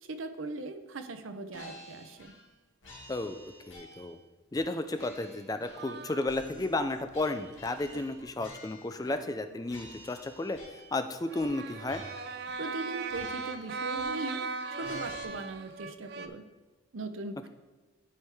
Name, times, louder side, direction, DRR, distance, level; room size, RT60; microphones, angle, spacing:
voice 1, 0.0-2.3 12.6-14.4 14.7-16.4 16.9-17.5, right 3 dB, 85° right, 8 dB, 0.7 m, -39 dB
sound 1, 1.5-2.5 2.8-4.2 4.5-6.0 6.2-9.4 9.7-11.0 11.4-11.6 11.8-12.8 13.1-14.5 14.8-15.2, left 1 dB, 80° left, 2.0 m, -51 dB
voice 2, 3.7-4.2 4.5-12.0, left 2 dB, 20° left, 9 dB, 0.3 m, -33 dB
sound 2, 5.7-6.8 7.6-8.1 8.9-9.6 11.3-16.3, right 4 dB, 55° right, 0.4 m, -38 dB
12.5 x 4.5 x 3.4 m, 1.2 s
head